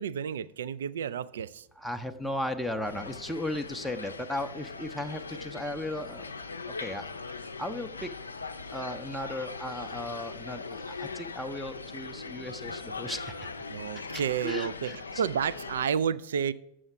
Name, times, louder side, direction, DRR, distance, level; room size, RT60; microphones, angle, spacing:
voice 1, 0.0-1.7 13.7-16.5, right 7 dB, 65° right, 17 dB, 0.3 m, -31 dB
voice 2, 1.8-6.3 6.6-7.1 7.3-8.1 8.7-13.5 14.1-15.2, left 1 dB, ahead, 5 dB, 0.6 m, -36 dB
sound 1, 2.8-15.9, left 4 dB, 75° left, 0.5 m, -40 dB
7.2 x 6.2 x 5.7 m, 0.77 s
figure-of-eight pair, 90°, 0 cm